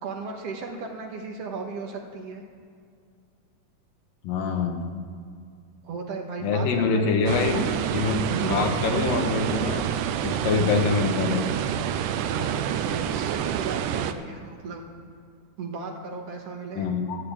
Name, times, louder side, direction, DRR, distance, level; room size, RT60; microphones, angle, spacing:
voice 1, 0.0-2.4 5.8-7.7 8.3-8.6 12.2-14.8 15.6-16.8, right 4 dB, 65° right, 1 dB, 1.6 m, -36 dB
voice 2, 4.2-4.9 6.4-7.6 7.9-9.8 10.2-11.5 16.8-17.2, left 4 dB, 70° left, 3 dB, 2.8 m, -25 dB
sound 1, 7.3-14.1, right 9 dB, 85° right, 1.9 m, -28 dB
13.0 x 7.7 x 8.5 m, 2.3 s
omnidirectional pair, 4.3 m